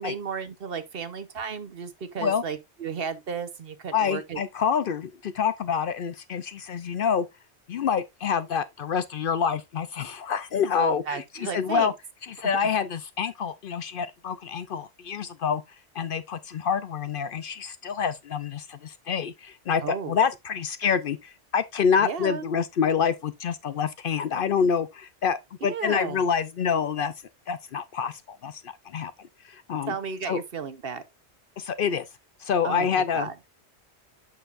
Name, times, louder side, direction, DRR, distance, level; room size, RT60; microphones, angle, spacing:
voice 1, 0.0-4.4 10.8-11.9 12.6-12.7 19.8-20.2 22.0-22.5 25.6-26.2 29.9-31.0 32.6-33.3, right 6 dB, 60° right, 1.1 m, -34 dB
voice 2, 3.9-7.3 7.7-11.9 12.3-15.6 15.9-27.1 27.5-29.9 30.3-30.4 31.6-32.0 32.4-33.3, left 7 dB, 60° left, 0.7 m, -27 dB
7.9 x 6.6 x 2.4 m
omnidirectional pair, 1.1 m